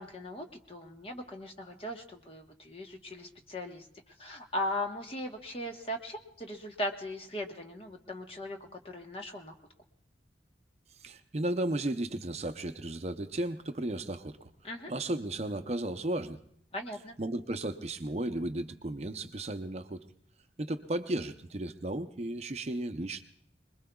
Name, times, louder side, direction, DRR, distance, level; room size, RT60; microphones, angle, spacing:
voice 1, 0.0-3.9 4.2-9.5 14.6-14.9 16.7-17.2, left 1 dB, 30° left, 3 dB, 1.2 m, -38 dB
voice 2, 11.0-14.5 14.9-16.4 17.2-20.0 20.6-23.2, right 1 dB, 35° right, 7 dB, 0.6 m, -34 dB
25.0 x 21.0 x 2.3 m, 0.66 s
head